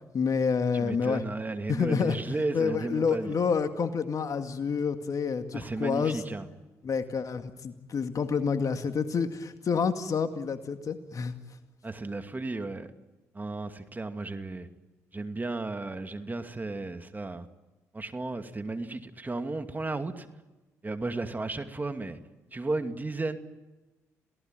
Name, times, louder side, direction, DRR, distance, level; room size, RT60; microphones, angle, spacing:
voice 1, 0.1-1.2 1.7-2.2 2.5-6.2 6.8-11.3, left 6 dB, 55° left, 8 dB, 2.1 m, -28 dB
voice 2, 0.7-3.3 5.5-6.5 11.8-12.9 13.3-14.7 15.1-17.5 17.9-20.3 20.8-22.2 22.5-23.4, right 2 dB, 25° right, 7 dB, 2.5 m, -34 dB
28.0 x 18.0 x 9.2 m, 1.1 s
hypercardioid pair, 50°, 7 cm